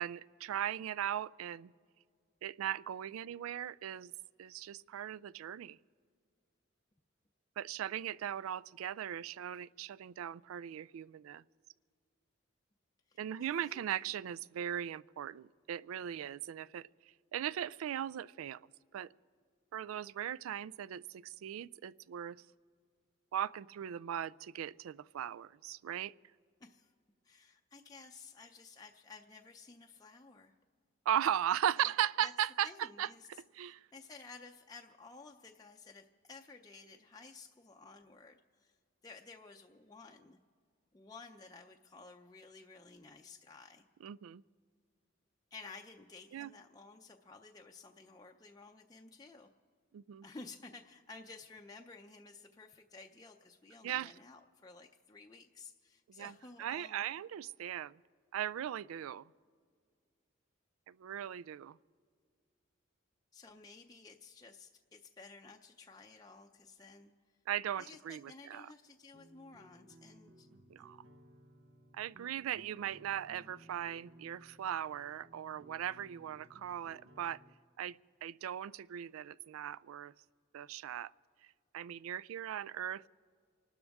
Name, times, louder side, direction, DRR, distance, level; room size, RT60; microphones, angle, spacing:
voice 1, 0.0-1.7 2.4-4.1 4.4-5.8 7.6-11.4 13.2-16.9 17.3-18.6 18.9-19.1 19.7-22.4 23.3-26.1 31.1-33.1 33.6-33.8 44.0-44.4 46.3-46.5 49.9-50.2 53.8-54.1 56.1-56.3 56.6-58.0 58.3-59.3 60.9-61.8 67.5-68.7 70.7-71.0 71.9-77.4 77.8-80.1 80.5-81.1 81.7-83.0, right 10 dB, 90° right, 20 dB, 0.3 m, -38 dB
voice 2, 13.1-13.8 26.6-26.9 27.2-30.6 31.8-31.9 32.2-32.3 32.6-38.8 39.0-40.4 40.9-43.9 45.5-49.5 50.2-57.1 63.3-67.1 67.8-70.5 70.8-71.0, left 4 dB, 20° left, 2 dB, 0.5 m, -54 dB
sound 1, 69.1-77.5, right 1 dB, 70° right, 0.9 m, -60 dB
29.0 x 12.5 x 3.5 m, 2.1 s
head